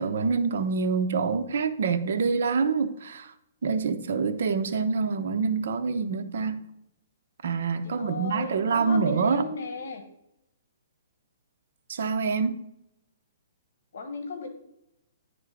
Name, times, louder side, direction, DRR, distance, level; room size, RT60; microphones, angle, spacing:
voice 1, 0.0-3.3 3.6-6.6 7.4-9.5 11.9-12.6, right 5 dB, 60° right, 0.7 m, -26 dB
voice 2, 7.8-10.0 13.9-14.5, left 4 dB, 65° left, 1.2 m, -35 dB
10.5 x 3.5 x 5.0 m
hypercardioid pair, 165°, 0 cm